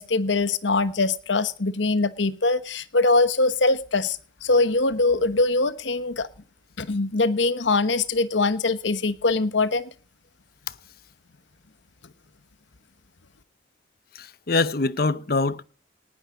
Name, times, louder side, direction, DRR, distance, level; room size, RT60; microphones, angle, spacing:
voice 1, 0.0-6.3 6.8-9.9, left 3 dB, 80° left, 1.2 m, -22 dB
voice 2, 14.1-15.6, left 3 dB, 50° left, 0.8 m, -24 dB
19.0 x 9.9 x 5.0 m
head